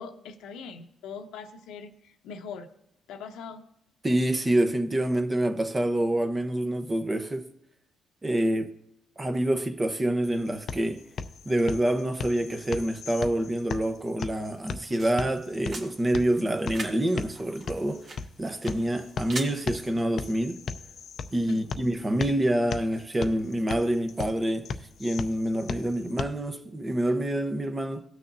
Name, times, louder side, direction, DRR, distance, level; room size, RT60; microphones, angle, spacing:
voice 1, 0.0-2.7 3.1-3.6 21.5-21.8, left 5 dB, 90° left, 0.9 m, -41 dB
voice 2, 4.0-7.4 8.2-8.7 9.2-11.0 11.5-18.1 18.4-20.6 21.3-24.7 25.0-28.0, right 1 dB, 20° right, 0.9 m, -27 dB
sound 1, 10.2-26.2, left 5 dB, 60° left, 0.5 m, -38 dB
sound 2, 14.5-19.5, right 2 dB, 50° right, 1.6 m, -43 dB
18.0 x 6.4 x 2.7 m
cardioid pair, 90°, 0 cm